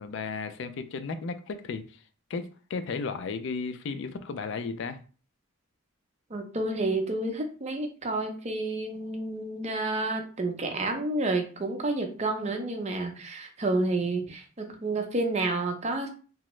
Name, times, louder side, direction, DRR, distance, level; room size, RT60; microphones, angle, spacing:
voice 1, 0.0-2.0 2.3-5.0, left 4 dB, 60° left, 0.3 m, -34 dB
voice 2, 6.3-16.1, right 2 dB, 35° right, 0.5 m, -30 dB
3.4 x 2.0 x 3.0 m
head